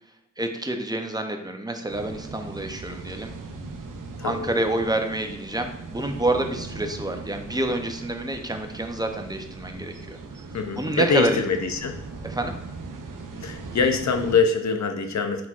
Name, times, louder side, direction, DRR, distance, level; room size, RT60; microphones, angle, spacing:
voice 1, 0.4-3.3 4.2-10.2 10.8-11.4 12.2-12.6, right 1 dB, 15° right, 4 dB, 0.5 m, -28 dB
sound 1, 1.9-14.4, right 3 dB, 80° right, 0.5 m, -39 dB
voice 2, 4.2-4.5 10.5-12.0 13.4-15.5, left 5 dB, 60° left, 5 dB, 0.5 m, -24 dB
4.2 x 4.2 x 2.4 m, 0.86 s
wide cardioid pair, 65°, 32 cm